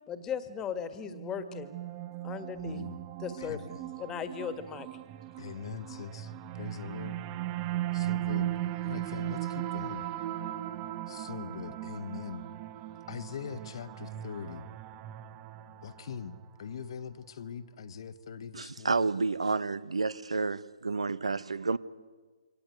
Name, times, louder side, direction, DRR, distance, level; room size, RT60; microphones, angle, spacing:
voice 1, 0.1-1.7 2.2-2.8 3.2-3.6 4.0-4.9, left 7 dB, 15° left, 11 dB, 1.8 m, -37 dB
sound 1, 1.1-16.4, right 13 dB, 30° right, 1.0 m, -37 dB
voice 2, 2.6-3.0 3.4-3.9 5.4-7.2 7.9-8.5 8.8-10.0 11.1-12.4 13.1-14.7 15.8-19.1, left 6 dB, 55° left, 12 dB, 1.3 m, -42 dB
voice 3, 18.5-21.8, right 4 dB, 80° right, 18 dB, 1.0 m, -30 dB
24.5 x 18.5 x 9.4 m, 1.5 s
figure-of-eight pair, 135°, 3 cm